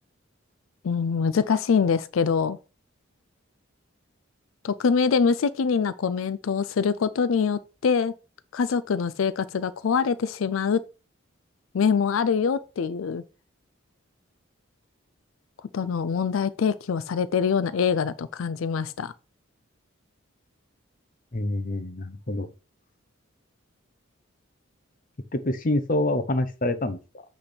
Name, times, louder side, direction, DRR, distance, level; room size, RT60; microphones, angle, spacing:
voice 1, 0.8-2.6 4.6-8.1 8.5-10.8 11.7-13.2 15.7-19.1, left 6 dB, 75° left, 0.4 m, -24 dB
voice 2, 21.3-22.5 25.3-27.2, left 1 dB, 40° left, 0.8 m, -27 dB
8.2 x 3.5 x 5.1 m
head